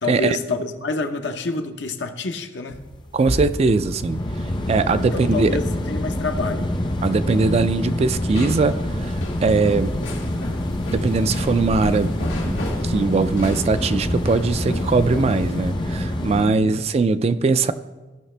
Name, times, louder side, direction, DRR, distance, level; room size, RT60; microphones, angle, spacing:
voice 1, 0.0-2.8 5.0-6.7 16.5-16.7, left 3 dB, 70° left, 6 dB, 0.8 m, -28 dB
sound 1, 2.7-16.5, left 1 dB, 25° left, 0.6 m, -26 dB
voice 2, 3.1-4.2 4.7-5.5 7.0-9.2 9.4-9.9 10.9-12.2 12.4-17.7, right 4 dB, 35° right, 12 dB, 0.3 m, -20 dB
sound 2, 8.3-15.7, left 1 dB, 85° left, 2.1 m, -34 dB
15.5 x 5.8 x 3.3 m, 1.2 s
head